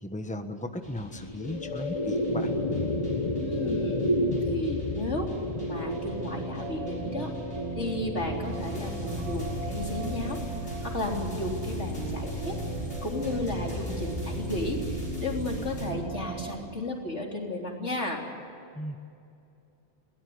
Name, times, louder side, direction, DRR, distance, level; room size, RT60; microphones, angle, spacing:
voice 1, 0.0-2.5 18.7-19.0, left 1 dB, 5° left, 7 dB, 1.3 m, -36 dB
sound 1, 0.8-15.9, left 1 dB, 70° left, 6.8 m, -40 dB
sound 2, 1.0-11.6, left 1 dB, 30° left, 1.3 m, -32 dB
voice 2, 3.4-4.2 4.4-5.3 5.6-7.3 7.7-12.6 13.0-18.2, left 1 dB, 90° left, 0 dB, 4.0 m, -34 dB
sound 3, 5.2-16.6, right 2 dB, 30° right, 2.4 m, -37 dB
22.0 x 18.0 x 9.6 m, 2.5 s
omnidirectional pair, 1.1 m